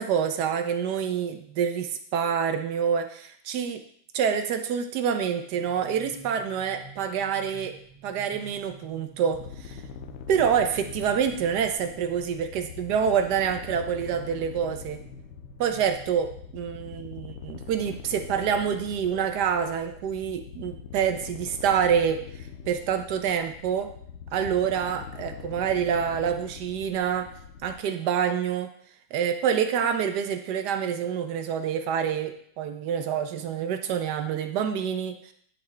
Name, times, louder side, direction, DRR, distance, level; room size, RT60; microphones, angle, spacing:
voice 1, 0.0-3.8 4.1-7.7 8.0-9.8 10.3-15.0 15.6-22.2 22.7-23.9 24.3-27.3 27.6-28.7 29.1-35.3, right 7 dB, 70° right, 7 dB, 1.1 m, -27 dB
sound 1, 5.5-16.5, right 1 dB, 15° right, 1.2 m, -50 dB
sound 2, 9.3-27.8, left 7 dB, 85° left, 1.4 m, -43 dB
10.5 x 4.2 x 3.2 m, 0.63 s
omnidirectional pair, 2.1 m